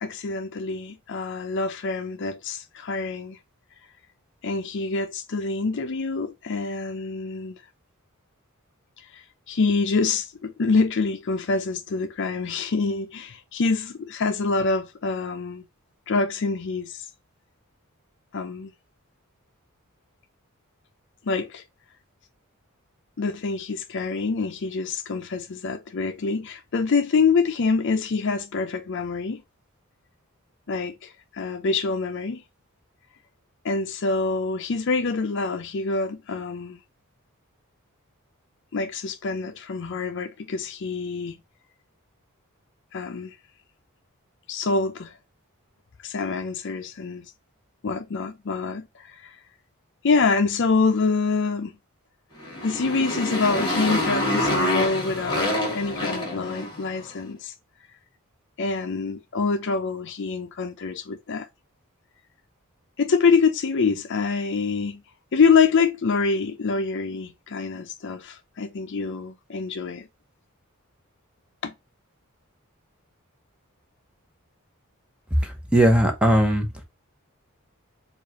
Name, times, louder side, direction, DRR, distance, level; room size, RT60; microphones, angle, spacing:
voice 1, 0.0-3.4 4.4-7.6 9.1-15.6 16.1-17.1 18.3-18.7 21.2-21.6 23.2-29.4 30.7-32.4 33.6-36.8 38.7-41.4 42.9-43.4 44.5-45.2 46.0-47.3 47.8-49.4 50.0-51.7 52.6-57.5 58.6-61.5 63.0-65.0 65.3-70.1 71.6-71.7, left 4 dB, 55° left, 0.5 m, -26 dB
Motorcycle, 52.4-57.0, left 1 dB, 20° left, 1.7 m, -26 dB
voice 2, 75.4-76.7, right 1 dB, 5° right, 0.9 m, -19 dB
4.6 x 2.5 x 2.9 m
head